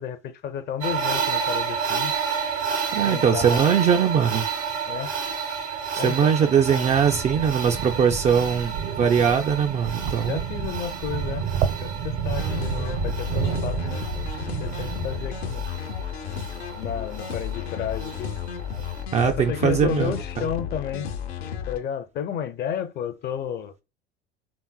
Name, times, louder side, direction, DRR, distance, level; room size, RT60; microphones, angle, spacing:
voice 1, 0.0-2.1 3.1-3.8 4.8-5.1 5.9-6.9 10.2-11.5 11.8-14.0 14.6-15.6 16.8-18.3 19.2-21.1 21.7-23.7, left 8 dB, 30° left, 0.5 m, -32 dB
sound 1, 0.8-19.0, right 6 dB, 75° right, 1.4 m, -31 dB
voice 2, 2.9-4.4 5.9-10.4 19.1-20.1, right 7 dB, 25° right, 0.3 m, -21 dB
sound 2, 6.7-15.9, right 7 dB, 50° right, 0.7 m, -31 dB
sound 3, 12.3-21.8, left 8 dB, 70° left, 0.7 m, -33 dB
4.1 x 3.4 x 2.2 m
figure-of-eight pair, 70°, 32 cm